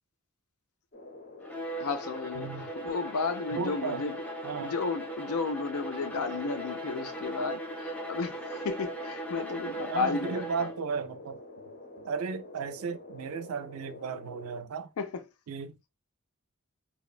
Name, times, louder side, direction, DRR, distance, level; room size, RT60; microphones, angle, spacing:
sound 1, 0.9-14.6, left 2 dB, 40° left, 0.7 m, -47 dB
Bowed string instrument, 1.4-10.9, right 1 dB, 5° left, 0.4 m, -39 dB
voice 1, 1.8-4.2 4.6-10.7 15.0-15.2, left 5 dB, 90° left, 0.5 m, -33 dB
voice 2, 2.4-2.7 3.5-4.0 4.4-4.7 9.9-11.4 12.0-14.9 15.5-15.8, right 5 dB, 70° right, 0.4 m, -35 dB
2.9 x 2.1 x 2.3 m
head